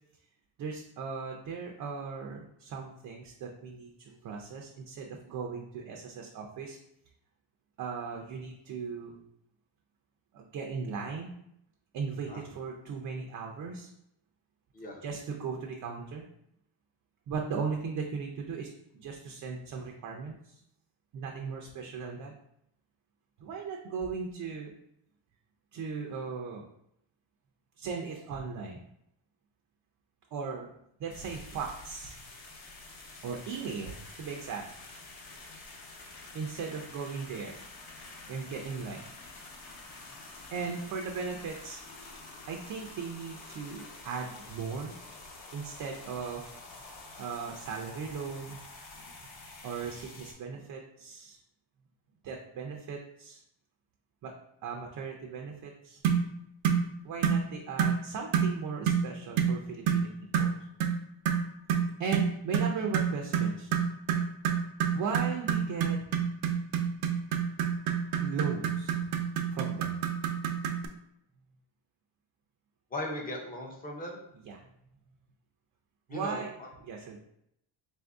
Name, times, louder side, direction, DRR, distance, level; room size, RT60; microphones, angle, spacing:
voice 1, 0.6-6.8 7.8-9.2 10.3-11.4 11.9-13.9 15.0-16.2 17.3-20.6 21.1-22.3 23.4-24.7 25.7-26.6 27.8-28.8 30.3-30.7 31.0-32.3 33.2-34.6 36.3-37.6 38.3-39.1 40.5-41.8 42.5-44.9 45.5-46.4 47.2-48.6 49.6-51.4 52.2-53.4 54.2-54.3 54.6-56.0 57.0-60.6 62.0-63.7 64.9-66.1 68.2-69.1 69.5-70.0 74.5-74.6 76.1-76.5 76.8-77.2, right 5 dB, 45° right, 1 dB, 0.5 m, -37 dB
sound 1, 31.1-50.3, left 3 dB, 50° left, 0.9 m, -48 dB
sound 2, 56.0-56.3 56.6-56.9 57.2-57.4 57.8-58.0 58.3-58.5 58.9-59.1 59.4-59.6 59.9-60.1 60.3-60.5 60.8-61.0 61.3-70.9, right 7 dB, 85° right, 0.6 m, -27 dB
voice 2, 72.9-74.2 76.1-76.7, left 1 dB, 20° left, 1 dB, 0.5 m, -38 dB
4.0 x 2.6 x 3.4 m, 0.76 s
cardioid pair, 160°, 48 cm